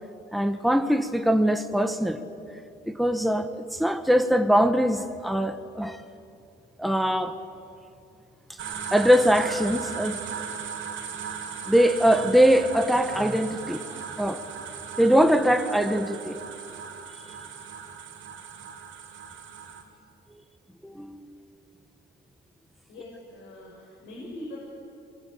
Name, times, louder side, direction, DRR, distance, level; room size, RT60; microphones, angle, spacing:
voice 1, 0.3-2.2 2.9-6.0 6.8-7.3 8.9-10.2 11.7-14.4 15.0-16.4 20.8-21.4, equal, ahead, 8 dB, 1.4 m, -22 dB
sound 1, 8.6-19.8, right 7 dB, 75° right, 3.2 m, -37 dB
voice 2, 22.9-24.6, left 1 dB, 80° left, -3 dB, 6.2 m, -42 dB
24.5 x 22.5 x 8.7 m, 2.6 s
cardioid pair, 90°, 20 cm